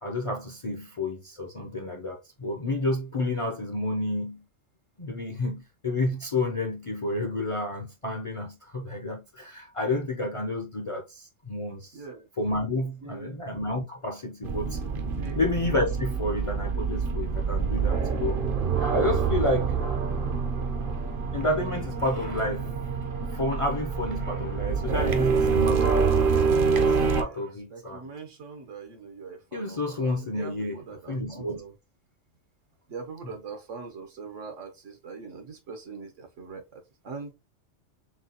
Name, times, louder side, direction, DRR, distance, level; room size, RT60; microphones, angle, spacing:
voice 1, 0.0-4.4 5.0-11.9 12.4-14.8 15.4-18.3 18.9-19.7 21.0-22.7 23.3-26.1 26.8-28.0 29.5-31.6, left 2 dB, 35° left, 0.5 m, -30 dB
voice 2, 11.9-12.3 13.0-13.4 15.2-15.4 27.1-27.4 27.7-31.7 32.9-37.3, right 4 dB, 75° right, 1.4 m, -42 dB
sound 1, 14.4-27.2, right 5 dB, 50° right, 0.8 m, -26 dB
6.1 x 2.3 x 2.8 m
omnidirectional pair, 1.3 m